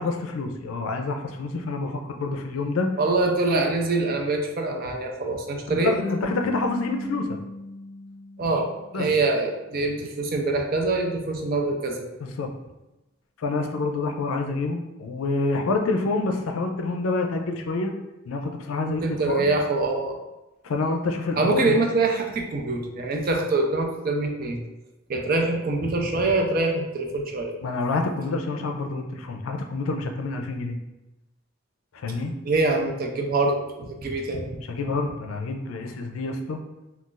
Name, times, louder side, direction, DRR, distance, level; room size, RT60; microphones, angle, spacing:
voice 1, 0.0-2.9 5.7-7.4 8.9-9.1 12.2-12.5 13.4-17.9 18.3-19.5 20.6-21.8 27.6-30.8 31.9-32.3 34.7-36.6, left 3 dB, 85° left, 4 dB, 0.4 m, -27 dB
voice 2, 3.0-6.0 8.4-12.1 18.8-20.2 21.4-24.6 25.1-27.6 32.4-34.6, right 2 dB, 45° right, 2 dB, 0.4 m, -24 dB
sound 1, 5.9-9.1, left 2 dB, ahead, 0.7 m, -36 dB
2.4 x 2.3 x 3.8 m, 1.0 s
head